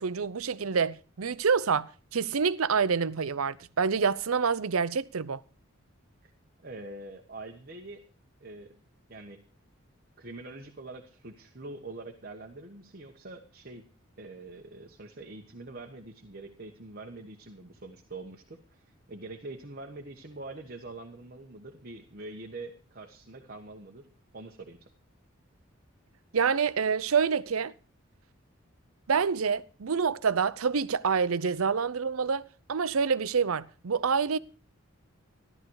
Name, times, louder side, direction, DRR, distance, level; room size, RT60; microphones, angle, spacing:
voice 1, 0.0-5.4 26.3-27.7 29.1-34.4, right 6 dB, 90° right, 0.7 m, -27 dB
voice 2, 6.6-8.0 8.4-8.8 9.1-9.4 10.2-13.8 14.2-24.9, right 2 dB, 45° right, 1.3 m, -44 dB
14.5 x 12.0 x 4.8 m
head